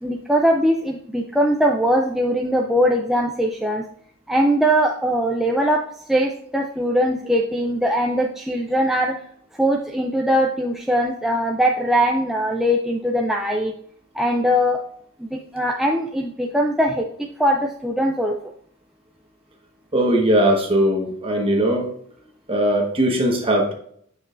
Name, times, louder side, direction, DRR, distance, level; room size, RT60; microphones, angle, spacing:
voice 1, 0.0-3.8 4.3-5.8 6.1-9.2 9.6-13.7 14.2-14.8 15.2-17.1 17.4-18.4, equal, ahead, -1 dB, 0.4 m, -21 dB
voice 2, 19.9-21.9 22.5-23.7, right 1 dB, 25° right, 1 dB, 1.3 m, -19 dB
7.7 x 6.1 x 2.5 m, 0.65 s
head